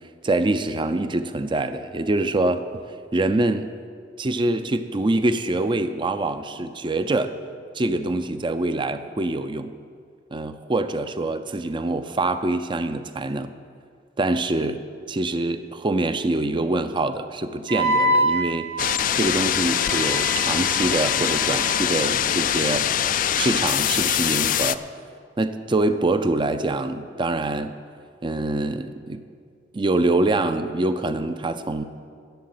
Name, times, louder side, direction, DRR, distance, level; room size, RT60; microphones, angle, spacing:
voice 1, 0.2-2.6 3.1-3.6 4.2-7.3 7.7-9.7 10.3-13.5 14.2-14.8 15.1-22.9 23.3-24.8 25.4-27.7 28.2-29.2 29.7-31.8, right 2 dB, 25° right, 10 dB, 0.5 m, -25 dB
Wind instrument woodwind instrument, 17.7-22.3, right 1 dB, 80° right, 4.0 m, -27 dB
sound 1, 18.8-24.7, left 10 dB, 50° left, 0.4 m, -23 dB
11.5 x 7.5 x 9.4 m, 2.1 s
head